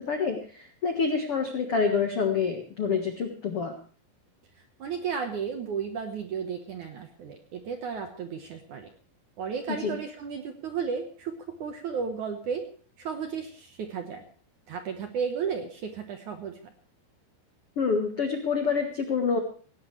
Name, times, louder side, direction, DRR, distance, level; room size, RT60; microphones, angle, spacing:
voice 1, 0.0-3.7 9.7-10.0 17.7-19.4, left 5 dB, 65° left, 4 dB, 1.4 m, -27 dB
voice 2, 4.8-8.9 9.4-12.7 13.0-14.2 14.7-16.6, right 6 dB, 65° right, 5 dB, 2.1 m, -33 dB
18.0 x 17.5 x 3.3 m, 0.42 s
omnidirectional pair, 5.0 m